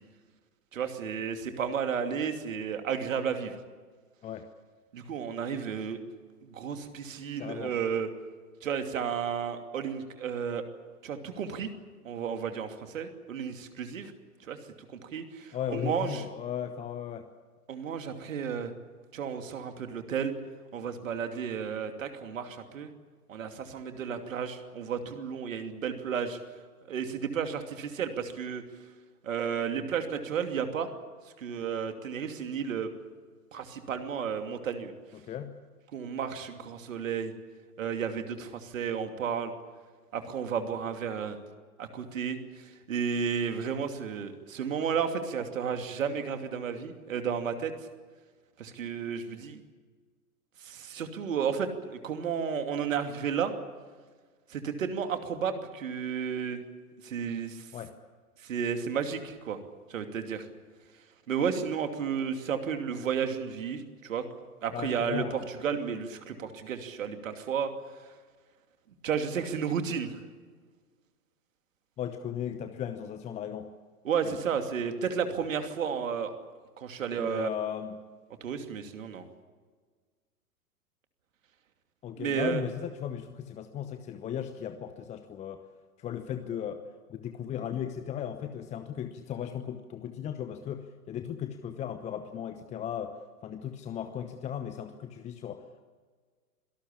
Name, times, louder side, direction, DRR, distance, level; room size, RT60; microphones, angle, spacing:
voice 1, 0.7-3.5 4.9-6.0 6.4-8.1 8.6-10.6 11.0-11.7 12.0-14.1 14.5-14.6 14.9-16.2 17.7-18.7 19.1-20.3 20.7-22.9 23.3-26.4 26.9-28.6 29.2-30.9 31.4-32.9 33.5-34.9 35.9-37.3 37.8-39.5 40.1-41.4 41.8-47.7 48.6-49.6 50.6-53.5 54.5-56.6 57.0-57.7 58.4-59.6 59.9-60.5 61.3-64.2 64.6-67.7 69.0-70.2 74.0-76.3 76.8-77.5 78.4-79.2 82.2-82.6, right 7 dB, 55° right, 6 dB, 2.8 m, -32 dB
voice 2, 7.4-7.8 15.5-17.3 35.1-35.6 57.7-57.9 64.7-65.5 72.0-73.7 74.2-74.4 77.2-78.0 82.0-85.6 86.0-86.8 87.1-93.2 93.4-95.8, left 9 dB, 15° left, 9 dB, 0.9 m, -36 dB
26.0 x 18.5 x 8.6 m, 1.5 s
figure-of-eight pair, 110°, 46 cm